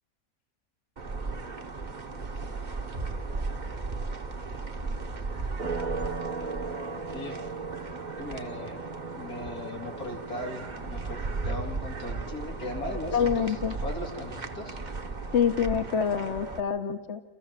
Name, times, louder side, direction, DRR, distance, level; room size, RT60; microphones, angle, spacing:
sound 1, 1.0-16.6, right 3 dB, 35° right, 1.2 m, -35 dB
voice 1, 8.2-8.8 9.1-13.5 13.8-14.8, left 1 dB, 90° left, 2 dB, 3.1 m, -38 dB
voice 2, 13.1-13.7 15.3-17.2, left 7 dB, 55° left, 7 dB, 1.3 m, -26 dB
29.0 x 14.5 x 7.4 m, 1.2 s
omnidirectional pair, 1.5 m